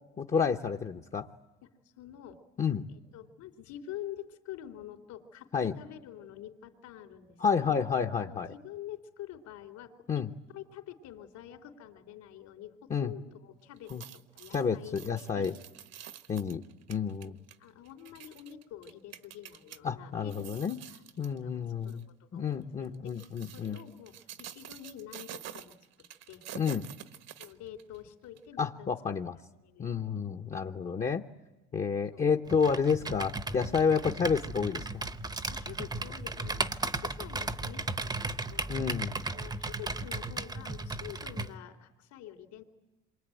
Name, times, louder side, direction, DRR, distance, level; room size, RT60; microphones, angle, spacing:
voice 1, 0.2-1.3 2.6-2.9 5.5-5.7 7.4-8.5 10.1-10.3 12.9-13.1 13.9-14.0 14.5-15.5 16.3-16.6 16.9-17.4 19.8-20.8 21.2-22.1 22.3-23.8 26.5-26.9 28.6-29.4 29.8-31.2 31.7-35.0 38.7-39.2, left 6 dB, 25° left, 4 dB, 0.9 m, -30 dB
voice 2, 1.6-2.4 2.9-7.8 8.2-15.6 17.2-20.6 20.9-26.4 27.4-28.9 29.6-30.2 31.9-32.3 35.5-38.7 39.3-42.6, left 11 dB, 70° left, 7 dB, 3.5 m, -47 dB
sound 1, 13.8-19.8 20.2-21.4 21.8-22.0 22.8-28.0 28.4-28.5, right 10 dB, 55° right, 1.3 m, -48 dB
Computer keyboard, 32.5-41.5, right 3 dB, 15° right, 0.9 m, -36 dB
27.0 x 23.5 x 9.2 m, 1.1 s
cardioid pair, 125°, 30 cm